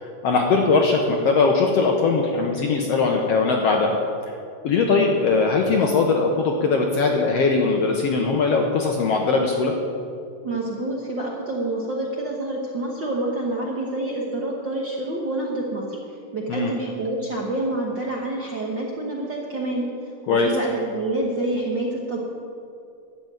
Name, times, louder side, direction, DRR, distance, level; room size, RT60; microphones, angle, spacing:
voice 1, 0.0-4.0 4.6-9.7 16.5-16.7 20.3-20.5, left 4 dB, 70° left, 2 dB, 1.6 m, -20 dB
voice 2, 10.4-16.0 16.3-19.9 20.3-22.2, right 2 dB, 55° right, -2 dB, 1.3 m, -27 dB
12.0 x 7.2 x 9.0 m, 2.5 s
omnidirectional pair, 3.7 m